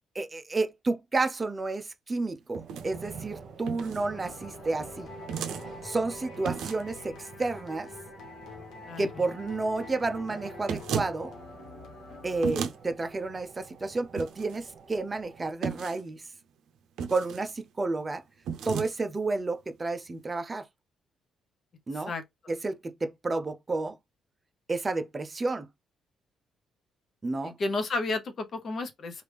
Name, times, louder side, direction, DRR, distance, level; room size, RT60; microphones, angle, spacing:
voice 1, 0.1-5.1 5.8-7.9 9.0-11.3 12.2-16.3 17.1-18.2 18.6-20.6 21.9-22.1 22.5-24.0 24.7-25.7 27.2-27.5, right 3 dB, 25° right, 0.5 m, -31 dB
sound 1, 2.5-15.5, right 5 dB, 55° right, 1.0 m, -48 dB
sound 2, 2.5-2.9 3.7-4.0 5.3-5.6 6.4-6.9 10.7-11.1 12.4-12.8 14.2-14.6 15.6-16.0 17.0-17.5 18.4-18.9, right 7 dB, 80° right, 0.5 m, -33 dB
sound 3, 4.0-12.9, left 4 dB, 75° left, 1.2 m, -46 dB
voice 2, 27.4-29.2, left 3 dB, 50° left, 0.8 m, -32 dB
3.2 x 2.5 x 3.4 m
cardioid pair, 90°, 0 cm